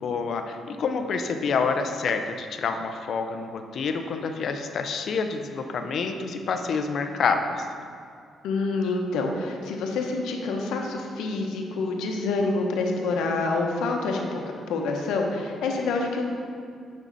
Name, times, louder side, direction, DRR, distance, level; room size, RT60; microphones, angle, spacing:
voice 1, 0.0-7.6, left 5 dB, 60° left, 6 dB, 0.6 m, -28 dB
voice 2, 8.4-14.4 14.7-16.2, left 3 dB, 85° left, 1 dB, 1.0 m, -27 dB
9.2 x 5.5 x 4.0 m, 2.3 s
cardioid pair, 90°, 0 cm